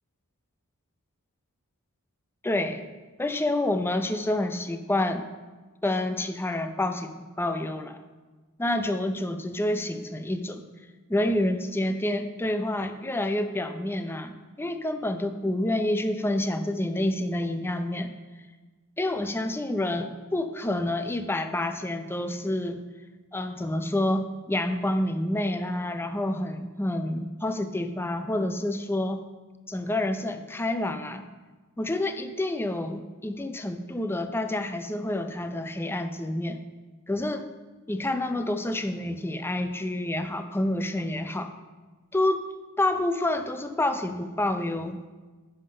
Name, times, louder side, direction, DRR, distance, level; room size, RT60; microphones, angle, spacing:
voice 1, 2.4-2.9 3.2-5.2 5.8-8.0 8.6-10.6 11.1-18.1 19.0-22.8 23.3-29.2 29.7-31.3 31.8-36.6 37.1-37.4 37.9-41.5 42.1-42.5 42.8-45.0, left 1 dB, 10° left, 8 dB, 0.5 m, -28 dB
10.5 x 5.8 x 5.4 m, 1.3 s
head